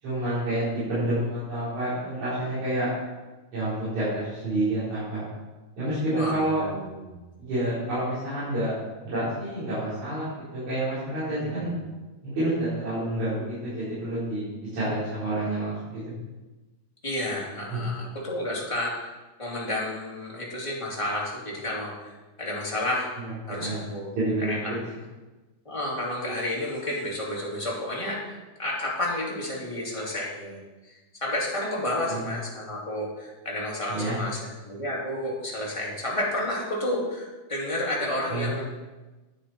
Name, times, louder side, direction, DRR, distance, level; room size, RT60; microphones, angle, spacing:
voice 1, 0.0-2.9 3.5-5.2 5.8-6.6 7.4-8.7 9.0-11.8 12.2-14.4 14.7-16.1 17.7-17.9 23.2-23.3 23.6-23.8 24.2-24.6 32.1-32.2 33.9-34.2 38.3-38.6, right 1 dB, 65° right, -13 dB, 5.9 m, -28 dB
voice 2, 6.1-7.2 11.4-11.7 17.0-23.1 23.5-24.1 24.4-24.7 25.6-28.2 28.6-30.9 31.2-38.6, left 1 dB, 10° left, -5 dB, 2.3 m, -31 dB
11.0 x 10.0 x 4.4 m, 1.2 s
omnidirectional pair, 3.7 m